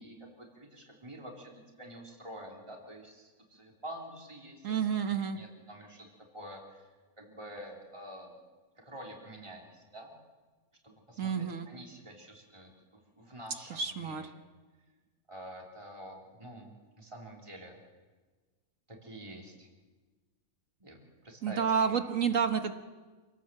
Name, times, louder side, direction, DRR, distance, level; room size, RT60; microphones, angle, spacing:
voice 1, 0.0-4.6 5.1-6.1 6.3-6.8 7.2-8.4 8.8-10.1 10.8-14.3 15.3-17.8 18.9-19.7 20.8-22.4, right 1 dB, 20° right, -1 dB, 3.7 m, -48 dB
voice 2, 4.6-5.4 11.2-11.7 13.7-14.2 21.4-22.7, right 7 dB, 60° right, 7 dB, 1.6 m, -30 dB
27.5 x 18.5 x 7.6 m, 1.4 s
omnidirectional pair, 1.5 m